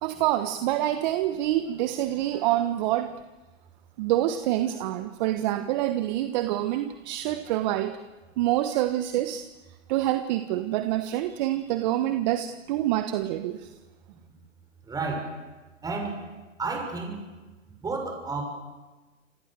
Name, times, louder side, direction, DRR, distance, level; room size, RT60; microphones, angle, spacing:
voice 1, 0.0-3.1 4.0-8.0 8.4-9.4 9.9-13.7, right 13 dB, 35° right, 9 dB, 1.4 m, -26 dB
voice 2, 14.9-15.3 15.8-16.2 16.6-17.2 17.8-18.4, right 3 dB, 10° right, 3 dB, 6.3 m, -31 dB
28.0 x 27.5 x 7.7 m, 1.2 s
hypercardioid pair, 135°, 39 cm